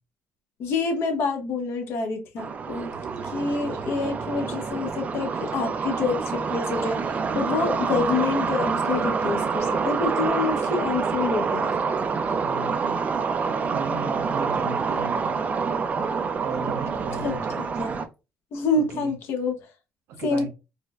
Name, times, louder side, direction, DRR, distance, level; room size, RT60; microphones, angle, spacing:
voice 1, 0.6-3.0 3.3-11.7 17.2-18.0 18.5-19.6 20.2-20.5, left 4 dB, 70° left, 0.9 m, -27 dB
sound 1, 2.4-18.1, right 5 dB, 35° right, 0.4 m, -27 dB
voice 2, 3.6-3.9 12.4-13.0 13.4-15.4 16.4-17.5 18.8-19.1 20.1-20.5, right 4 dB, 85° right, 0.8 m, -36 dB
4.4 x 2.1 x 2.4 m
cardioid pair, 115°, 4 cm